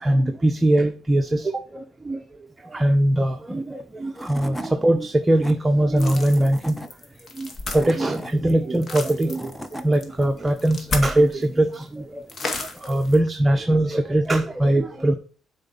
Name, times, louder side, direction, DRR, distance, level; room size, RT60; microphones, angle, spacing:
voice 1, 0.0-2.2 2.7-6.8 7.4-9.5 9.8-12.5 12.8-15.1, right 1 dB, 20° right, 5 dB, 1.0 m, -21 dB
Tools / Wood, 3.8-3.9 4.1-4.7 5.2-5.5 6.3-6.9 7.5-8.3 9.1-9.9, equal, 10° left, 1.2 m, -36 dB
sound 1, 6.0-11.5 11.7-11.8 12.3-13.2, left 3 dB, 45° left, 2.0 m, -33 dB
8.3 x 4.9 x 7.0 m, 0.40 s
cardioid pair, 90°, 0 cm